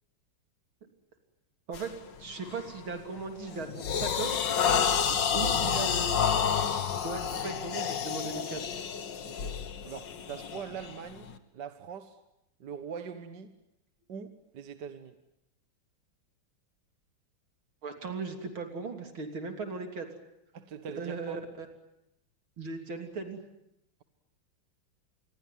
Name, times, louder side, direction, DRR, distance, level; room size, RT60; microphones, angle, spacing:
sound 1, 1.7-2.0 2.5-2.8 3.2-11.3, left 7 dB, 65° left, 2.0 m, -30 dB
voice 1, 2.2-4.4 5.3-6.2 7.0-8.6 17.8-20.1 21.0-21.7 22.6-23.4, right 4 dB, 80° right, 5 dB, 3.9 m, -37 dB
voice 2, 5.1-6.0 9.2-9.6 9.8-11.3 11.5-12.2 12.6-13.5 14.1-15.2 20.5-21.4, right 7 dB, 60° right, 9 dB, 1.9 m, -42 dB
27.5 x 21.5 x 9.2 m, 0.85 s
omnidirectional pair, 2.2 m